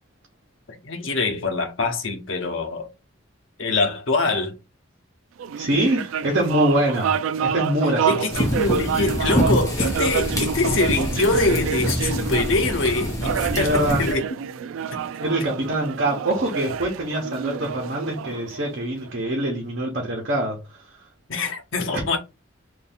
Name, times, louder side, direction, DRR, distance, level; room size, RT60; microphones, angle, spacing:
voice 1, 0.7-2.9 3.6-4.6 8.1-14.2 14.9-15.1 21.3-22.2, left 3 dB, 70° left, 0.9 m, -24 dB
sound 1, 5.4-19.1, right 7 dB, 75° right, 0.3 m, -28 dB
voice 2, 5.5-8.2 13.5-14.0 15.2-20.6, right 1 dB, 60° right, 1.1 m, -24 dB
sound 2, 8.3-14.1, equal, 15° left, 1.1 m, -26 dB
3.4 x 2.6 x 4.1 m
head